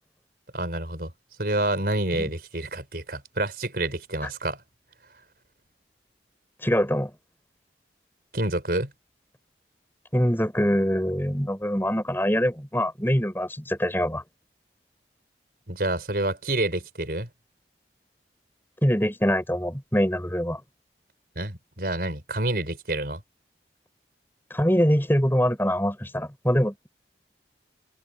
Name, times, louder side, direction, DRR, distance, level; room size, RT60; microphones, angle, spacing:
voice 1, 0.5-1.1 1.4-4.6 8.3-8.9 15.7-17.3 21.4-23.2, right 1 dB, 55° right, 5.1 m, -28 dB
voice 2, 6.6-7.1 10.1-14.2 18.8-20.6 24.5-26.9, equal, 10° left, 6.9 m, -24 dB
head